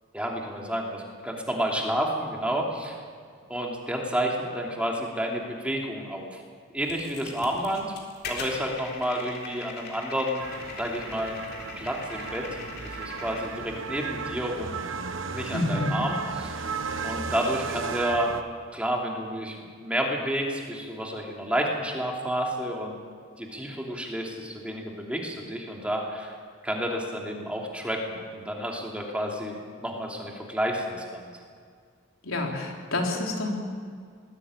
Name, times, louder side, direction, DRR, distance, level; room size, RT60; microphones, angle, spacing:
voice 1, 0.1-3.0 3.5-6.4 6.7-7.9 8.3-10.4 10.8-11.4 11.7-14.8 15.3-16.7 17.0-18.3 18.7-22.9 23.4-26.3 26.6-31.3, equal, 5° right, -1 dB, 2.9 m, -30 dB
sound 1, 6.9-13.5, left 4 dB, 50° left, 3.7 m, -41 dB
sound 2, 10.4-18.4, right 5 dB, 65° right, 1.2 m, -35 dB
voice 2, 15.5-16.0 32.2-33.5, left 2 dB, 85° left, 0 dB, 3.9 m, -28 dB
20.5 x 16.5 x 8.7 m, 2.1 s
head